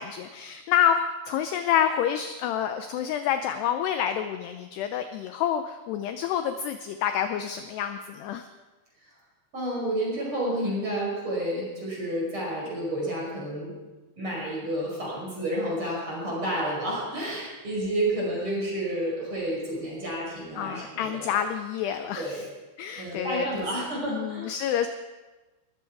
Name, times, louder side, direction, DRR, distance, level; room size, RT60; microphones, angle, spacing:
voice 1, 0.0-8.4 20.6-22.3 22.8-23.6 24.1-24.9, left 9 dB, 80° left, 8 dB, 2.4 m, -28 dB
voice 2, 9.5-13.8 14.2-21.4 22.1-22.5 23.0-24.5, right 1 dB, 25° right, -3 dB, 6.0 m, -30 dB
20.5 x 14.5 x 4.8 m, 1.2 s
omnidirectional pair, 5.6 m